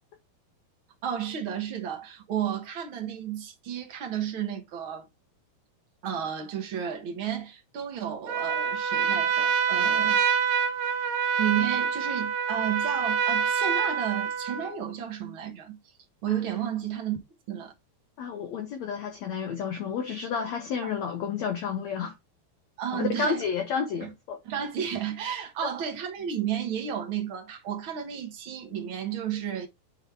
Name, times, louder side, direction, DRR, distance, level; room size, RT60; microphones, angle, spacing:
voice 1, 1.0-5.1 6.0-10.4 11.4-15.8 16.2-17.2 17.5-17.7 20.8-20.9 22.8-23.4 24.0-24.1 24.4-29.7, right 9 dB, 55° right, 1.4 m, -32 dB
Trumpet, 8.3-14.7, right 7 dB, 80° right, 2.9 m, -26 dB
voice 2, 18.2-22.1 22.9-24.4 25.6-25.7, left 6 dB, 70° left, 1.7 m, -31 dB
9.3 x 4.0 x 3.4 m
omnidirectional pair, 4.4 m